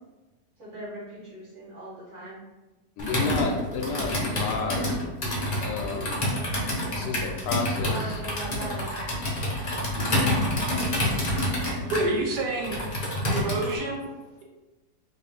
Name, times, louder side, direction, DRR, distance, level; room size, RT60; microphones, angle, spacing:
voice 1, 0.6-2.4 7.8-8.9, right 1 dB, 50° right, -7 dB, 1.6 m, -39 dB
voice 2, 3.0-4.9 5.6-6.2 6.9-8.2, left 4 dB, 85° left, 2 dB, 1.2 m, -31 dB
Computer keyboard, 3.0-13.8, left 1 dB, 40° left, 0.6 m, -28 dB
voice 3, 11.4-12.8 13.3-14.1, right 2 dB, 85° right, 0 dB, 1.3 m, -29 dB
3.3 x 2.6 x 3.3 m, 1.1 s
omnidirectional pair, 1.8 m